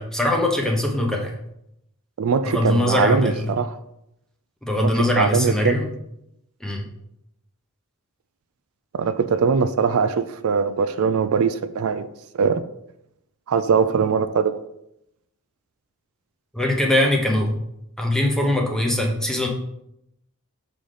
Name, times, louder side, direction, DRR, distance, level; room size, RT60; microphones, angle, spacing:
voice 1, 0.0-1.3 2.4-3.5 4.6-5.8 6.6-6.9 16.5-17.6 18.0-19.5, left 1 dB, 5° left, 0.9 m, -21 dB
voice 2, 2.2-3.7 4.8-5.8 8.9-12.1 12.3-12.6 13.5-14.6, right 5 dB, 70° right, 0.4 m, -21 dB
7.0 x 3.8 x 5.0 m
head